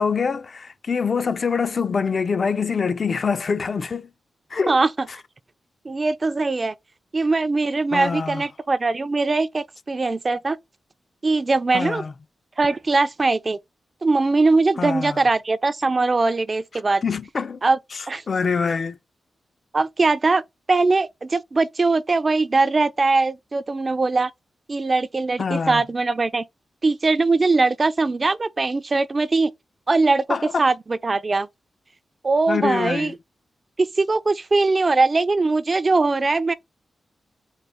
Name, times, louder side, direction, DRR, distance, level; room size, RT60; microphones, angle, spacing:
voice 1, 0.0-4.1 4.5-4.8 7.9-8.4 11.7-12.1 14.8-15.2 17.0-17.6 17.9-19.0 25.4-25.8 30.3-30.5 32.5-33.1, left 5 dB, 55° left, 0.4 m, -25 dB
voice 2, 5.8-6.7 7.1-10.6 11.2-12.0 12.6-13.6 14.0-17.0 17.6-17.8 18.1-18.2 19.7-20.4 20.7-24.3 24.7-26.5 26.8-29.5 29.9-31.5 32.2-33.1 33.8-36.5, right 3 dB, 40° right, 0.3 m, -21 dB
4.0 x 2.0 x 3.3 m
cardioid pair, 70°, 0 cm